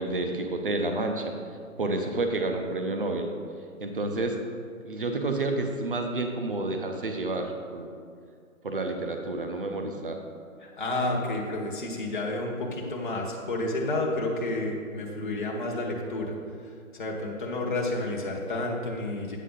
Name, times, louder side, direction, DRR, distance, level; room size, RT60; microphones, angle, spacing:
voice 1, 0.0-1.3 1.8-3.3 3.8-4.4 4.8-7.9 8.6-10.2, right 2 dB, 40° right, 4 dB, 0.6 m, -29 dB
voice 2, 10.6-16.3 16.6-19.4, left 2 dB, 35° left, -2 dB, 1.0 m, -30 dB
8.4 x 6.5 x 3.7 m, 2.2 s
hypercardioid pair, 170°, 42 cm